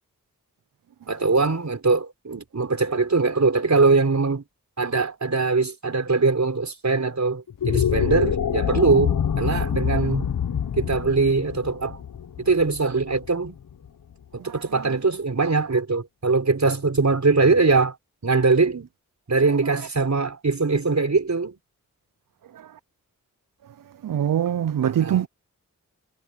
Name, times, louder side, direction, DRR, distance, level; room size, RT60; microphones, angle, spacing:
voice 1, 1.1-4.4 4.8-10.3 10.8-12.0 12.4-13.6 14.3-17.9 18.2-18.9 19.3-21.5 24.8-25.3, right 4 dB, 55° right, 4.3 m, -22 dB
sound 1, 7.5-13.9, left 8 dB, 75° left, 1.0 m, -26 dB
voice 2, 24.0-25.3, right 10 dB, 75° right, 0.6 m, -23 dB
cardioid pair, 45°, 33 cm